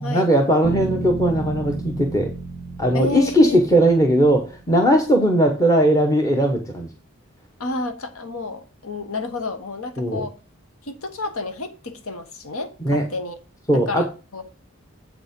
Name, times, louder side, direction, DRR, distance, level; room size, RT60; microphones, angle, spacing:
voice 1, 0.0-2.3 2.8-6.9 10.0-10.2 12.8-13.0 13.7-14.1, right 1 dB, 15° left, 1.0 m, -18 dB
sound 1, 0.6-4.6, right 2 dB, 30° left, 1.9 m, -32 dB
voice 2, 2.9-3.6 7.6-10.4 10.8-13.4 13.7-14.5, left 2 dB, 70° left, 1.2 m, -30 dB
8.1 x 5.0 x 5.2 m
head